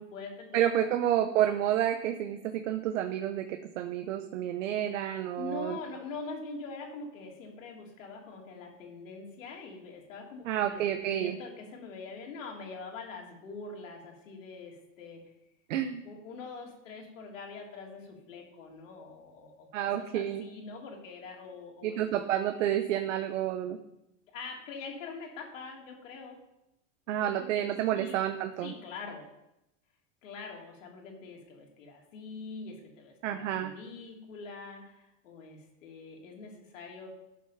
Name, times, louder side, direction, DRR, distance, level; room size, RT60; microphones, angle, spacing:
voice 1, 0.0-0.9 5.4-10.8 11.1-15.2 16.0-22.1 24.3-26.4 27.1-28.3 28.6-29.3 30.2-37.1, left 4 dB, 80° left, 0 dB, 3.5 m, -44 dB
voice 2, 0.5-5.8 10.4-11.4 15.7-16.0 19.7-20.4 21.8-23.8 27.1-28.7 33.2-33.7, right 11 dB, 75° right, 8 dB, 1.0 m, -30 dB
13.0 x 6.9 x 5.8 m, 0.87 s
hypercardioid pair, 105°, 38 cm